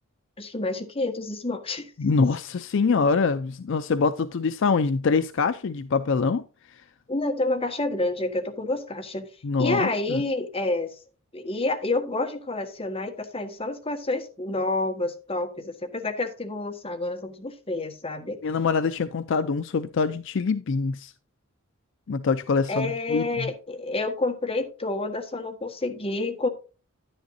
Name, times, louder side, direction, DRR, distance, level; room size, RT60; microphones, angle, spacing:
voice 1, 0.4-1.9 7.1-9.3 9.6-10.9 11.3-18.4 22.7-26.5, left 2 dB, 25° left, 1.4 m, -29 dB
voice 2, 2.0-6.8 9.4-10.2 18.4-21.1 22.1-23.5, left 4 dB, 60° left, 0.4 m, -24 dB
10.5 x 10.0 x 2.6 m
head